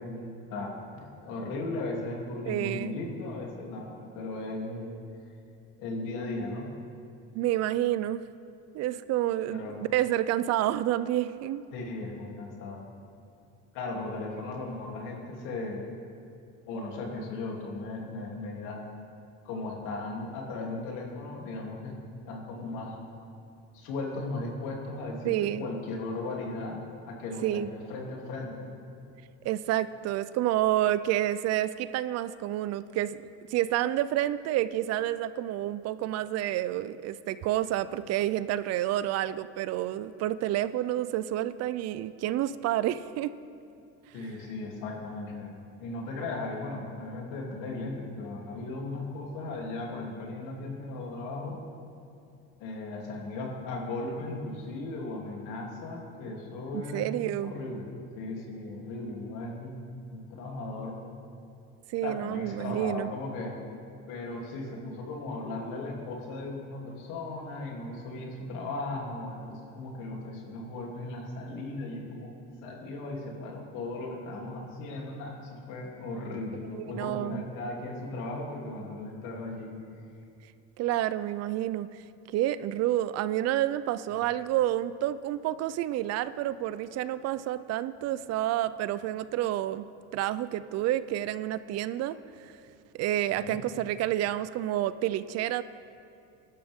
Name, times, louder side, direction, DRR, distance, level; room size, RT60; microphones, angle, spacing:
voice 1, 0.0-4.9 5.8-6.7 9.5-9.8 11.7-12.9 13.7-15.9 16.7-18.9 19.4-22.0 22.2-23.0 23.7-26.8 27.1-28.7 44.1-45.5 45.8-51.6 52.6-57.1 57.4-57.9 58.2-59.8 60.1-61.0 62.0-63.6 64.1-72.3 72.6-79.7 93.4-93.6, left 2 dB, 75° left, -1 dB, 3.1 m, -37 dB
voice 2, 2.5-3.0 7.3-8.2 8.7-11.6 25.2-25.7 27.4-27.7 29.4-33.2 33.5-43.3 56.7-57.5 61.9-63.1 76.7-77.5 80.8-82.0 82.3-89.9 90.1-92.1 92.4-92.5 92.9-95.6, right 13 dB, 55° right, 15 dB, 0.5 m, -29 dB
22.0 x 12.0 x 3.7 m, 2.5 s
cardioid pair, 135°, 32 cm